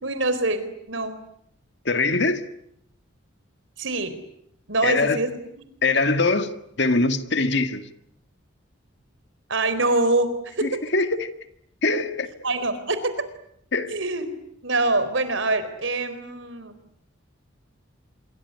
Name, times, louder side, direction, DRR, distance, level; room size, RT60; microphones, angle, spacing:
voice 1, 0.0-1.2 3.8-4.2 4.7-5.6 9.5-10.8 12.4-13.1 13.9-14.3 14.6-16.7, right 2 dB, 70° right, 4.2 m, -25 dB
voice 2, 1.9-2.5 4.8-5.2 5.8-6.5 6.8-7.8 10.6-11.3 11.8-12.3 13.7-13.9, left 3 dB, 60° left, 1.9 m, -22 dB
27.0 x 23.0 x 9.7 m
head